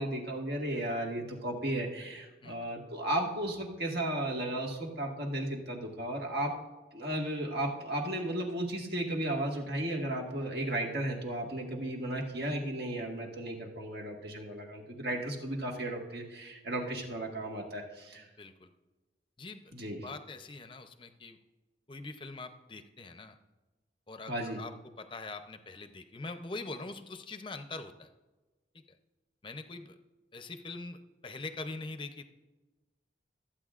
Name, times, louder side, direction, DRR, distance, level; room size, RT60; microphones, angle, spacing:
voice 1, 0.0-6.5 6.9-18.3 19.7-20.0 24.3-24.6, right 1 dB, 65° right, 0 dB, 1.8 m, -34 dB
voice 2, 18.2-18.7 19.4-19.6 20.0-21.4 21.9-23.3 24.1-28.1 28.7-28.8 29.4-30.0 30.3-32.3, left 3 dB, 30° left, 8 dB, 0.6 m, -43 dB
25.0 x 8.8 x 2.5 m, 1.2 s
head